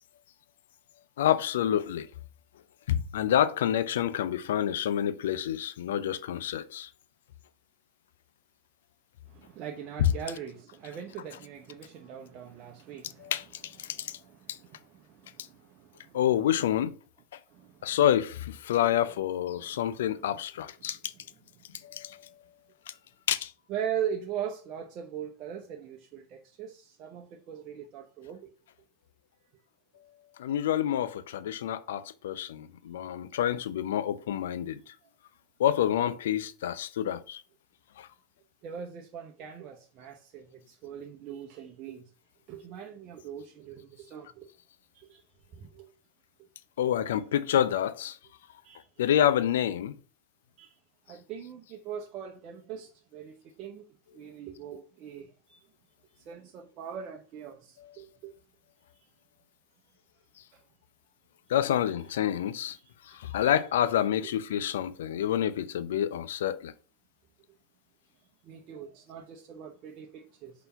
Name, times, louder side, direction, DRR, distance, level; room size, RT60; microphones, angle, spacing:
voice 1, 1.2-2.1 2.9-6.9 10.0-10.1 13.2-14.1 16.1-17.0 17.8-21.1 21.8-22.2 23.3-23.5 30.4-34.8 35.6-37.4 38.0-38.1 46.8-48.2 49.0-49.9 61.5-62.8 63.0-66.7, left 10 dB, 65° left, 0.5 m, -28 dB
voice 2, 9.3-13.3 13.8-14.7 15.4-16.2 17.5-17.7 18.8-19.0 19.6-19.7 23.7-28.4 38.6-42.0 42.5-44.5 45.0-45.2 45.5-45.9 48.6-49.1 50.6-50.7 51.1-53.8 54.1-55.6 56.3-58.3 62.7-63.5 64.2-64.3 68.5-70.5, right 8 dB, 45° right, 0.9 m, -40 dB
5.5 x 4.1 x 5.6 m
figure-of-eight pair, 80°, 0 cm